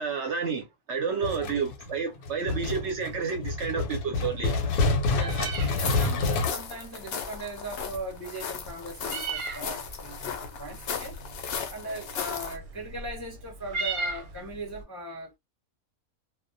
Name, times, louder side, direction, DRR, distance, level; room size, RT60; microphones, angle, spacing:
voice 1, 0.0-4.6, right 5 dB, 65° right, 0.8 m, -30 dB
sound 1, 1.2-6.5, left 3 dB, 90° left, 1.1 m, -28 dB
voice 2, 1.2-1.5 5.1-11.1 11.7-15.4, right 1 dB, 20° left, 0.4 m, -39 dB
Meow, 4.7-14.8, right 4 dB, 85° right, 1.1 m, -39 dB
sound 2, 5.6-12.6, left 6 dB, 65° left, 0.6 m, -36 dB
2.3 x 2.1 x 2.5 m
omnidirectional pair, 1.5 m